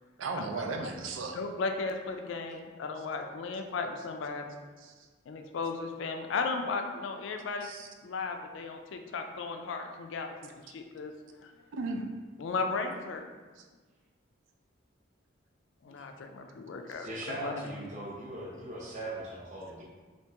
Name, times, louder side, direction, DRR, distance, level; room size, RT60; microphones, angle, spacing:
voice 1, 0.2-1.4 4.8-4.9 7.6-7.9 11.7-12.1 13.6-13.7 16.9-17.1, right 3 dB, 85° right, 4 dB, 0.4 m, -36 dB
voice 2, 1.3-4.6 5.3-7.7 8.0-10.3 10.7-11.1 11.4-11.5 12.4-13.3 15.8-17.6, left 4 dB, 75° left, 5 dB, 0.3 m, -35 dB
voice 3, 17.0-19.8, right 1 dB, 40° right, -5 dB, 0.7 m, -39 dB
2.9 x 2.8 x 3.3 m, 1.4 s
head